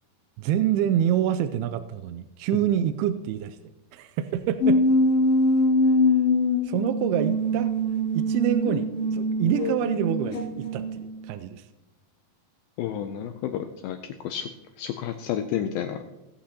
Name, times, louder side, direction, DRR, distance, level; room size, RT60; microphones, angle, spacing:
voice 1, 0.4-3.6 3.9-4.8 6.6-7.7 8.1-11.6, right 10 dB, 85° right, 11 dB, 2.3 m, -26 dB
sound 1, 4.6-11.3, left 1 dB, 45° left, 3.1 m, -23 dB
voice 2, 12.8-14.5 14.8-16.0, left 9 dB, 90° left, 7 dB, 2.1 m, -31 dB
19.0 x 8.5 x 2.9 m, 1.0 s
omnidirectional pair, 4.7 m